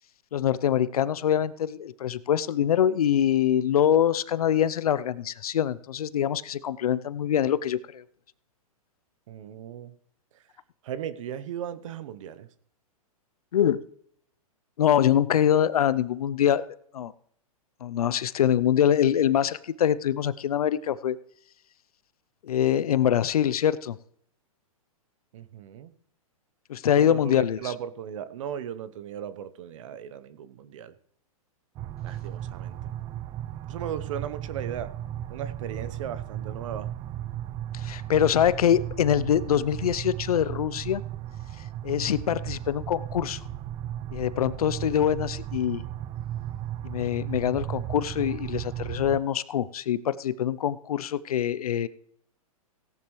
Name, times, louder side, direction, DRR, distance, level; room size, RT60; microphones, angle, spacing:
voice 1, 0.3-8.0 13.5-13.8 14.8-16.6 16.9-17.1 17.8-21.2 22.4-24.0 26.7-27.6 37.7-41.0 41.8-43.4 44.1-45.8 46.8-51.9, left 10 dB, 75° left, 18 dB, 0.6 m, -24 dB
voice 2, 9.3-9.9 10.8-12.5 25.3-25.9 27.0-30.9 32.0-32.8 33.7-34.9 35.3-36.9, right 9 dB, 60° right, 14 dB, 1.0 m, -37 dB
sound 1, 31.8-49.2, right 12 dB, 25° right, 0.5 m, -35 dB
17.0 x 10.5 x 3.2 m, 0.66 s
hypercardioid pair, 130°, 19 cm